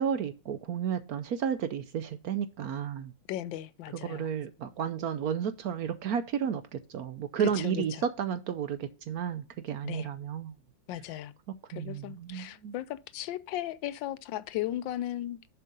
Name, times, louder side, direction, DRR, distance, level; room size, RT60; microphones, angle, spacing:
voice 1, 0.0-3.1 3.9-10.5 11.7-12.7, right 8 dB, 70° right, 1.0 m, -32 dB
voice 2, 3.3-4.3 7.6-7.8 9.8-10.1 10.9-11.3 11.7-15.5, left 13 dB, 85° left, 1.3 m, -36 dB
7.2 x 5.6 x 5.3 m
omnidirectional pair, 2.0 m